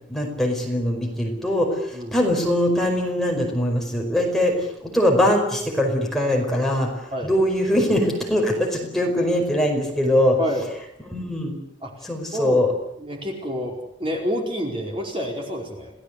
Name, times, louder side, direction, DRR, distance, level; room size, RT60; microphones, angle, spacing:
voice 1, 0.1-10.4 11.1-11.6 12.0-12.7, left 1 dB, ahead, -1 dB, 5.1 m, -22 dB
voice 2, 13.0-13.7 14.0-15.9, equal, 30° right, 1 dB, 4.6 m, -28 dB
28.0 x 18.0 x 8.4 m, 0.78 s
head